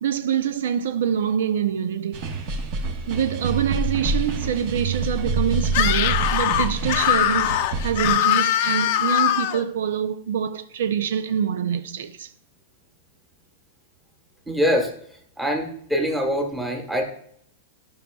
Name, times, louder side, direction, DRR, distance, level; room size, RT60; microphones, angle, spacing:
voice 1, 0.0-2.3 3.1-12.3, right 8 dB, 80° right, 0.5 m, -25 dB
sound 1, 2.1-8.1, right 3 dB, 45° right, 1.0 m, -27 dB
Screaming, 5.7-9.6, left 11 dB, 50° left, 0.6 m, -21 dB
voice 2, 14.5-14.9 15.4-17.0, equal, 5° right, 1.2 m, -23 dB
12.0 x 5.5 x 2.3 m
supercardioid pair, 165°, 0 cm